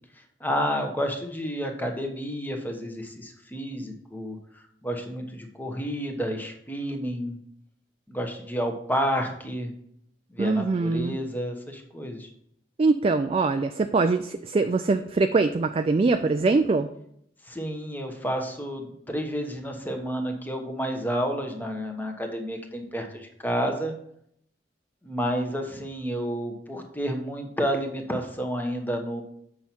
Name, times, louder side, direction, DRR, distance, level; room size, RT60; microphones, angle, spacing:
voice 1, 0.4-4.4 4.8-7.3 8.1-9.7 10.3-12.3 17.5-23.9 25.0-29.2, equal, 10° left, 4 dB, 1.0 m, -30 dB
voice 2, 10.4-11.2 12.8-16.9, right 3 dB, 30° right, 7 dB, 0.3 m, -23 dB
7.5 x 5.6 x 4.4 m, 0.71 s
head